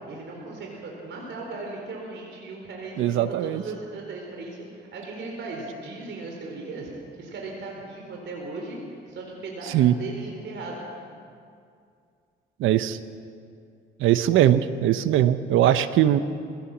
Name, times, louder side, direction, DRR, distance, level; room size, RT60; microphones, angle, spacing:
voice 1, 0.1-6.9 7.2-8.8 9.1-10.8 15.7-16.1, right 3 dB, 65° right, -1 dB, 4.3 m, -37 dB
voice 2, 3.0-3.6 9.7-9.9 12.6-13.0 14.0-16.2, right 12 dB, 85° right, 12 dB, 0.9 m, -20 dB
21.0 x 17.5 x 7.3 m, 2.3 s
cardioid pair, 90°, 20 cm